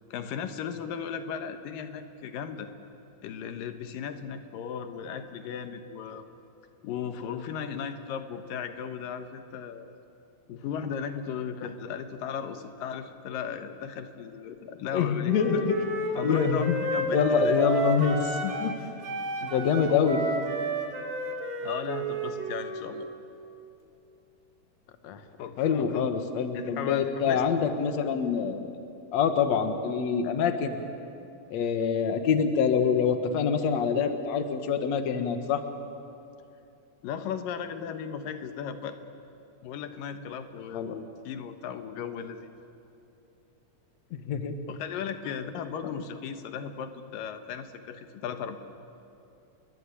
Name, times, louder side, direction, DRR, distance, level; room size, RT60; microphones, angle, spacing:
voice 1, 0.1-2.7 3.2-6.2 6.8-9.9 10.5-15.6 16.2-16.7 16.9-17.8 21.6-23.1 25.4-26.1 26.5-27.4 37.0-39.0 39.6-42.5 44.7-48.6, left 7 dB, 85° left, 8 dB, 2.9 m, -36 dB
voice 2, 14.9-15.8 16.2-16.8 17.1-18.7 19.4-20.3 25.0-25.2 25.6-28.7 29.1-30.8 31.5-35.6 40.7-40.9 44.1-44.5, left 6 dB, 60° left, 7 dB, 2.5 m, -26 dB
Wind instrument woodwind instrument, 15.2-18.8 19.0-22.9, right 1 dB, 90° right, 4.5 m, -31 dB
30.0 x 22.0 x 8.5 m, 2.7 s
omnidirectional pair, 3.8 m